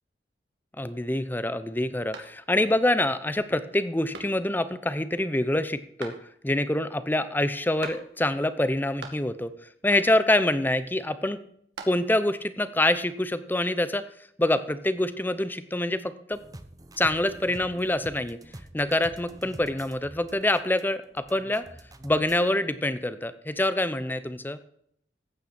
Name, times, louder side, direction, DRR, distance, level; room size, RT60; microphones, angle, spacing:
voice 1, 0.8-6.2 6.4-9.5 9.8-11.4 11.8-14.1 14.4-16.4 17.0-18.4 18.7-21.6 22.0-24.6, left 1 dB, 10° left, 13 dB, 0.7 m, -26 dB
sound 1, 2.1-2.8 3.2-3.3 4.1-4.7 6.0-6.6 7.8-8.4 8.7-9.5 9.9-10.4 11.4-12.3, right 3 dB, 90° right, 2.1 m, -44 dB
sound 2, 16.3-22.5, right 1 dB, 20° right, 0.8 m, -47 dB
14.5 x 8.9 x 4.3 m, 0.68 s
head